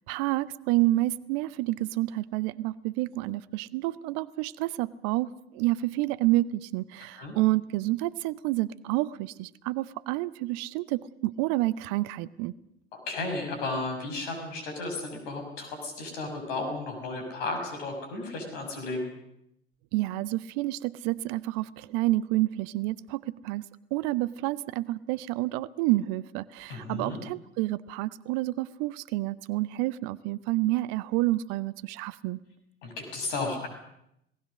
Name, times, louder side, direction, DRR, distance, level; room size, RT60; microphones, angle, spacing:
voice 1, 0.1-12.5 19.9-23.6 23.9-32.4, right 18 dB, 55° right, 19 dB, 0.8 m, -29 dB
voice 2, 13.1-19.1 26.7-27.2 32.8-33.7, left 3 dB, 65° left, 4 dB, 6.4 m, -34 dB
27.5 x 18.5 x 6.4 m, 0.78 s
figure-of-eight pair, 65°, 31 cm